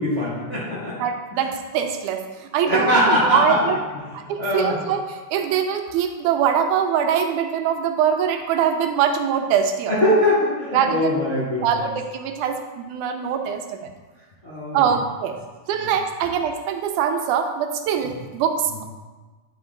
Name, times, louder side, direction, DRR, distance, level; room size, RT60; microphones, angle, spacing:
voice 1, 0.0-1.0 1.3-1.4 2.6-3.8 4.4-4.8 9.9-11.6 14.4-14.8, left 1 dB, 55° left, -8 dB, 0.7 m, -21 dB
voice 2, 1.0-3.8 4.1-9.9 10.7-11.2 11.6-13.9 14.7-15.4 15.7-18.8, right 8 dB, 80° right, 5 dB, 2.0 m, -23 dB
9.5 x 4.2 x 3.8 m, 1.3 s
omnidirectional pair, 3.6 m